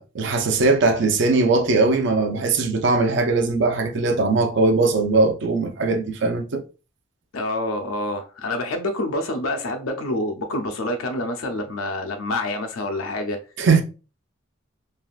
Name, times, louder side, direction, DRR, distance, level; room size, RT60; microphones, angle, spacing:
voice 1, 0.0-6.6 13.6-13.8, right 3 dB, 60° right, 0.5 m, -20 dB
voice 2, 7.3-13.4, left 1 dB, 85° left, 0.5 m, -27 dB
3.4 x 2.3 x 2.4 m
head